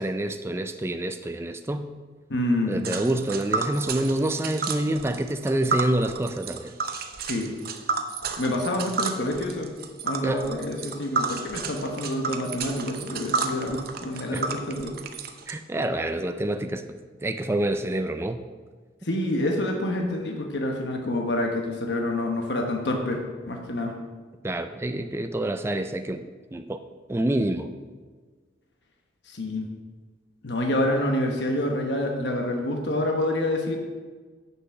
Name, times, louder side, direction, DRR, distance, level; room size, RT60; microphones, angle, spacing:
voice 1, 0.0-1.9 2.7-6.7 10.2-10.5 14.3-14.4 15.5-16.8 17.2-18.4 24.4-26.2 26.5-26.8 27.1-27.7, right 1 dB, 15° right, 7 dB, 0.4 m, -27 dB
voice 2, 2.3-2.9 7.2-7.5 8.4-9.7 10.0-15.0 19.0-23.9 29.3-29.7 30.4-33.8, left 1 dB, 70° left, 2 dB, 1.1 m, -27 dB
Tick, 2.8-15.5, right 4 dB, 55° right, 0.7 m, -31 dB
7.4 x 6.8 x 5.7 m, 1.4 s
head